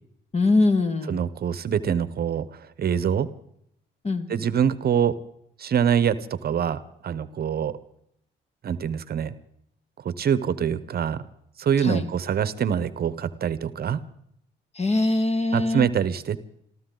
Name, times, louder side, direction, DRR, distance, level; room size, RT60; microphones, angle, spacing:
voice 1, 0.3-1.2 4.0-4.3 11.8-12.1 14.8-15.9, left 2 dB, 30° left, 9 dB, 1.8 m, -22 dB
voice 2, 1.1-3.3 4.3-5.2 5.6-7.8 8.6-9.3 10.0-11.2 11.6-14.0 15.5-16.4, right 8 dB, 50° right, 15 dB, 0.9 m, -25 dB
26.5 x 14.0 x 3.9 m, 0.74 s
cardioid pair, 90°, 20 cm